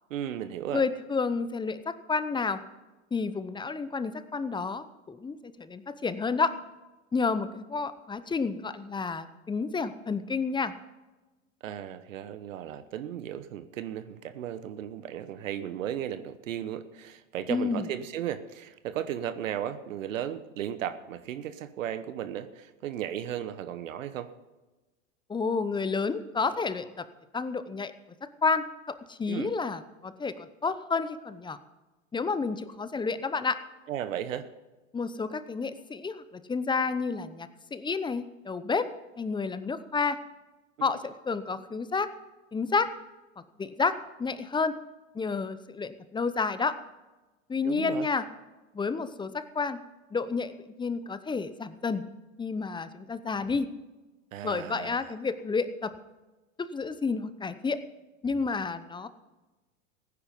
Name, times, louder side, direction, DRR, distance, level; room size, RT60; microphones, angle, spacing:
voice 1, 0.1-0.8 11.6-24.3 29.3-29.5 33.9-34.5 47.6-48.1 54.3-55.1, right 10 dB, 75° right, 12 dB, 1.1 m, -35 dB
voice 2, 0.7-2.6 3.1-6.5 7.1-10.7 17.5-17.8 25.3-27.1 27.3-27.9 28.2-31.6 32.1-33.6 34.9-38.9 39.2-40.2 40.8-42.1 42.5-42.9 43.4-44.7 45.1-46.8 47.5-48.2 48.7-49.8 50.1-52.0 52.4-53.7 54.4-55.9 56.6-57.8 58.2-59.1, left 4 dB, 10° left, 13 dB, 0.7 m, -30 dB
16.5 x 9.9 x 5.4 m, 1.1 s
hypercardioid pair, 100°, 39 cm